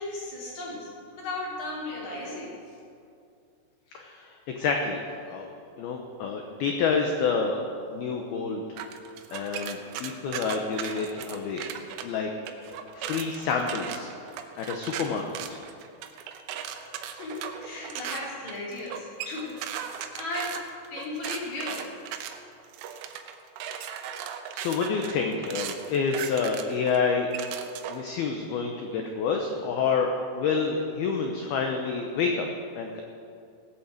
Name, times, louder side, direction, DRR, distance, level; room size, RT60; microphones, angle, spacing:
voice 1, 0.0-2.8 16.6-20.6 20.9-21.9, left 2 dB, 40° left, -5 dB, 4.4 m, -36 dB
voice 2, 3.9-5.0 5.3-5.5 5.8-7.6 7.9-8.8 9.3-11.7 12.0-12.3 12.9-14.1 14.6-15.2 15.5-15.6 24.5-27.3 27.9-32.5 32.7-33.0, left 5 dB, 80° left, 3 dB, 2.2 m, -28 dB
sound 1, 8.8-12.1 12.5-28.1, right 9 dB, 80° right, 3.2 m, -37 dB
18.5 x 8.6 x 7.8 m, 2.4 s
omnidirectional pair, 5.8 m